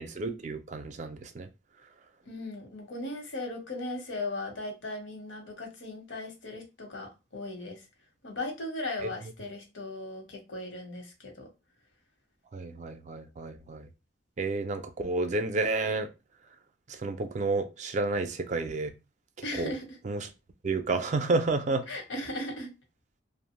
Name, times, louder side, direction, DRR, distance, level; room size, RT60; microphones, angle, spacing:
voice 1, 0.0-1.5 12.5-13.9 14.4-16.1 17.0-18.9 19.6-19.7 20.0-20.3 20.6-21.8, right 3 dB, 40° right, 0.3 m, -30 dB
voice 2, 2.3-7.8 8.2-11.5 19.4-20.0 21.9-22.7, left 2 dB, 85° left, 0.9 m, -37 dB
2.7 x 2.0 x 3.0 m
head